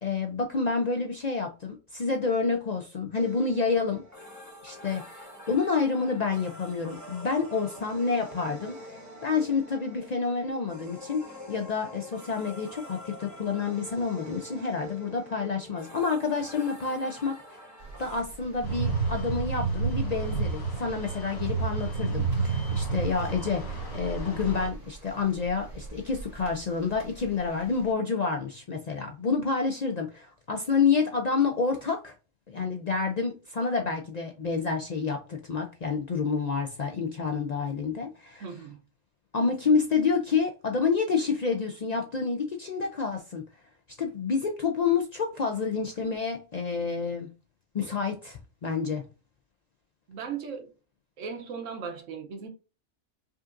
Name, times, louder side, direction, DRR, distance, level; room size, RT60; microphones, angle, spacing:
voice 1, 0.0-4.0 4.6-17.6 18.0-32.1 32.5-38.5 39.3-43.5 44.0-47.3 47.7-49.1, left 5 dB, 55° left, 0.4 m, -28 dB
sound 1, 3.1-18.2, left 1 dB, 15° right, 0.8 m, -46 dB
sound 2, 17.8-27.9, right 3 dB, 35° right, 1.3 m, -42 dB
sound 3, 18.6-24.7, right 4 dB, 70° left, 1.8 m, -30 dB
voice 2, 38.4-38.8 50.1-50.7 51.2-52.5, right 6 dB, 85° right, 1.1 m, -37 dB
5.2 x 2.5 x 2.5 m
omnidirectional pair, 1.3 m